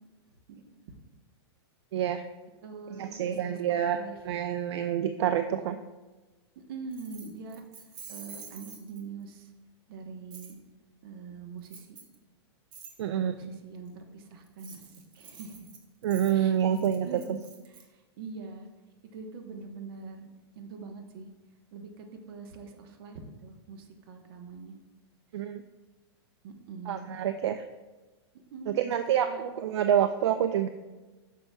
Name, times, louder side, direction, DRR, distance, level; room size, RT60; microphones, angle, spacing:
voice 1, 1.9-2.2 2.9-4.0 4.3-5.8 13.0-13.3 16.0-17.4 25.3-25.6 26.9-27.6 28.7-30.7, right 9 dB, 75° right, 9 dB, 0.4 m, -27 dB
voice 2, 2.6-3.6 3.9-4.3 6.5-9.5 9.9-10.6 11.0-11.9 13.0-15.7 16.3-17.4 17.7-18.7 19.1-20.3 20.5-21.3 21.7-24.7 26.4-27.1 28.5-29.0 29.3-29.5, right 5 dB, 55° right, 4 dB, 1.1 m, -43 dB
Keys jangling, 6.9-9.2 10.3-10.5 11.6-12.2 12.7-12.9 14.4-17.8, right 6 dB, 35° right, 1.1 m, -48 dB
9.8 x 6.6 x 2.3 m, 1.2 s
hypercardioid pair, 135°, 14 cm